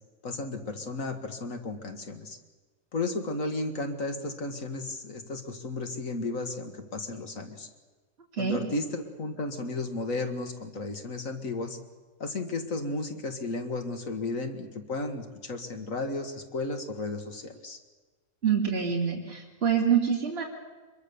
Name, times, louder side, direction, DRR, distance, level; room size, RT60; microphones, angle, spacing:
voice 1, 0.2-2.4 2.9-7.7 8.4-11.8 12.2-17.8, left 2 dB, 55° left, 6 dB, 2.0 m, -34 dB
voice 2, 18.4-20.4, right 7 dB, 40° right, 0 dB, 2.8 m, -26 dB
25.0 x 22.5 x 6.9 m, 1.3 s
omnidirectional pair, 1.7 m